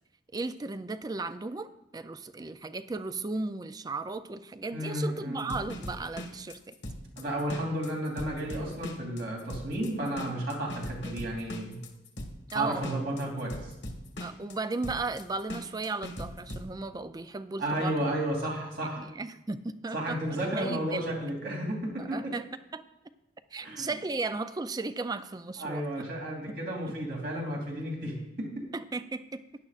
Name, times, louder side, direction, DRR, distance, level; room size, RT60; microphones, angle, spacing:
voice 1, 0.3-6.8 12.5-12.8 14.2-17.9 19.0-20.2 20.6-21.2 22.0-22.5 22.7-22.8 23.5-25.8 28.7-29.4, right 3 dB, 20° right, 12 dB, 0.4 m, -35 dB
voice 2, 4.7-5.5 7.2-11.8 12.5-13.6 17.6-19.1 19.9-22.3 23.6-23.9 25.6-28.5, right 1 dB, 60° right, -1 dB, 2.9 m, -32 dB
sound 1, 5.4-16.7, left 1 dB, 80° left, 1.5 m, -40 dB
16.0 x 10.5 x 2.5 m, 0.90 s
head